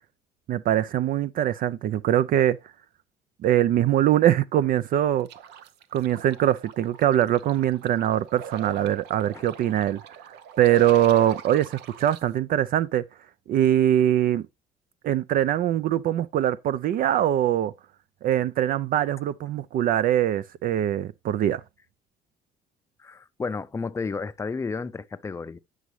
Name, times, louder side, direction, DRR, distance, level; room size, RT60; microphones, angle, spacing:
voice 1, 0.5-2.6 3.4-5.3 5.9-10.0 10.6-13.0 13.5-14.4 15.0-17.7 18.2-21.6, right 11 dB, 55° right, 0.4 m, -22 dB
sound 1, 5.3-12.2, right 7 dB, 85° right, 0.7 m, -41 dB
voice 2, 23.0-25.6, left 4 dB, 15° left, 0.4 m, -32 dB
9.3 x 6.2 x 3.1 m
cardioid pair, 110°, 17 cm